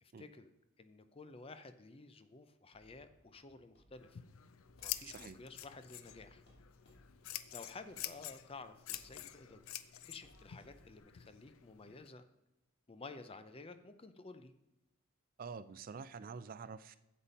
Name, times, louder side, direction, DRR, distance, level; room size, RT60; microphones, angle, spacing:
voice 1, 0.0-0.5 0.8-4.2 4.8-6.4 7.5-9.6 10.0-12.3 12.9-14.5, left 3 dB, 25° left, 10 dB, 0.5 m, -53 dB
sound 1, 2.7-11.0, equal, 55° left, 2.4 m, -67 dB
Scissors, 3.9-12.1, left 12 dB, 85° left, 0.5 m, -48 dB
voice 2, 5.0-5.4 15.4-17.0, right 5 dB, 45° right, 15 dB, 0.3 m, -47 dB
8.2 x 7.3 x 5.2 m, 0.94 s
head